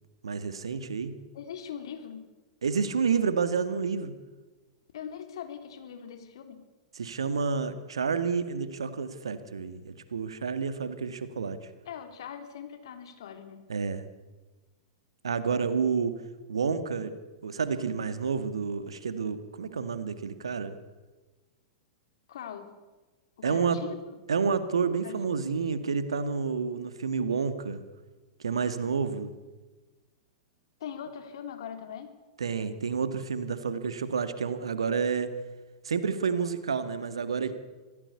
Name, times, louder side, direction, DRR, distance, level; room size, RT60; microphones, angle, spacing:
voice 1, 0.2-1.2 2.6-4.2 6.9-11.7 13.7-14.1 15.2-16.2 16.5-17.2 17.4-20.8 23.4-23.8 24.3-27.8 28.4-29.3 32.4-35.3 35.8-37.5, right 5 dB, 70° right, 11 dB, 2.1 m, -29 dB
voice 2, 1.3-2.3 4.9-6.6 11.9-13.6 22.3-22.7 23.4-24.0 25.0-25.2 30.8-32.1, left 8 dB, 60° left, 7 dB, 3.5 m, -41 dB
25.5 x 17.0 x 8.4 m, 1.2 s
figure-of-eight pair, 100°, 3 cm